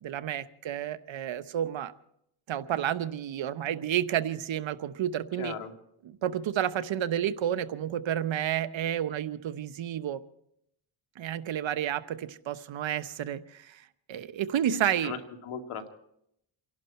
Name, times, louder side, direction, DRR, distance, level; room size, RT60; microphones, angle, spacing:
voice 1, 0.0-1.9 2.5-5.5 6.2-10.2 11.2-13.8 14.1-15.1, right 10 dB, 65° right, 12 dB, 1.1 m, -30 dB
voice 2, 5.4-5.7 14.7-15.9, left 6 dB, 85° left, 5 dB, 2.3 m, -38 dB
29.0 x 11.5 x 4.3 m, 0.76 s
cardioid pair, 80°, 49 cm